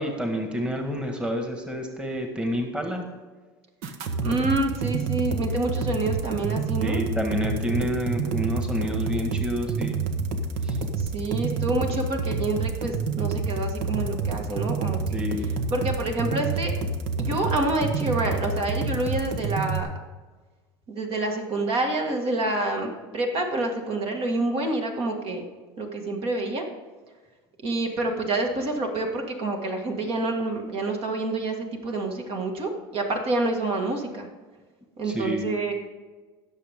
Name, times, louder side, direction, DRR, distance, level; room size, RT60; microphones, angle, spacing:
voice 1, 0.0-3.0 6.8-10.0 10.6-10.8 15.1-15.5 35.0-35.5, equal, 10° right, 3 dB, 1.7 m, -29 dB
sound 1, 3.8-19.8, right 4 dB, 65° right, 1.2 m, -28 dB
voice 2, 4.2-7.0 11.0-15.0 15.7-16.8 17.2-19.9 20.9-25.4 25.8-26.6 27.6-34.3 35.0-35.7, right 2 dB, 50° right, 2 dB, 2.2 m, -27 dB
16.5 x 7.0 x 3.7 m, 1.3 s
supercardioid pair, 95°, 12 cm